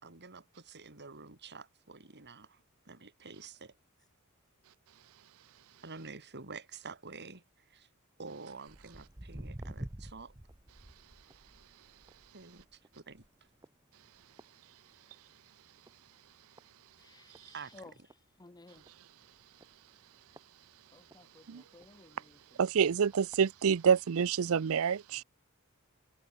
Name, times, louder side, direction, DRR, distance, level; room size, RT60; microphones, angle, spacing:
voice 1, 0.0-3.8 5.8-7.9 8.2-10.3 12.3-13.3 17.5-18.1, right 4 dB, 50° right, 3.3 m, -49 dB
Walk footsteps, 8.7-15.3 15.7-16.0 16.6-16.7 17.3-17.4 17.8-17.9 18.1-18.2 18.8-19.0 19.6-21.2 21.8-21.9 22.6-22.7 23.1-23.4 24.1-24.2, right 1 dB, 15° right, 1.0 m, -49 dB
voice 2, 17.0-17.9 18.4-18.8 20.9-22.6, left 2 dB, 20° left, 0.9 m, -56 dB
voice 3, 22.6-25.2, right 7 dB, 70° right, 0.5 m, -27 dB
head